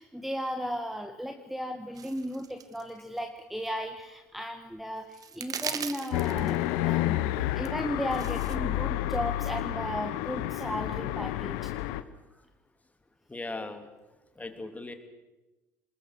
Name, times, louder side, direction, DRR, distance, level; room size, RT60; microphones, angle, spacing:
voice 1, 0.0-11.7, equal, ahead, 5 dB, 1.8 m, -35 dB
sound 1, 2.0-2.9 3.2-3.3 3.7-3.8 4.8-4.9 5.1-6.6 7.7-8.6, right 7 dB, 40° right, 1.6 m, -38 dB
sound 2, 6.1-12.0, left 15 dB, 70° left, 1.0 m, -30 dB
voice 2, 13.3-13.9 14.4-14.9, left 2 dB, 15° left, 6 dB, 3.1 m, -38 dB
26.5 x 21.0 x 6.5 m, 1.1 s
hypercardioid pair, 60°, 9 cm